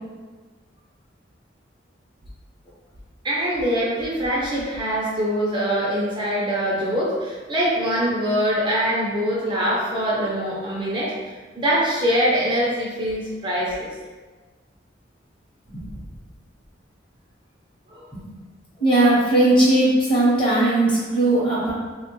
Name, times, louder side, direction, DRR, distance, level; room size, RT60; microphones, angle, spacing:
voice 1, 3.2-11.1 11.6-13.9 17.9-18.1, equal, 25° right, -6 dB, 0.4 m, -23 dB
voice 2, 18.8-21.7, right 1 dB, 25° left, -7 dB, 0.8 m, -18 dB
3.0 x 2.1 x 2.9 m, 1.4 s
head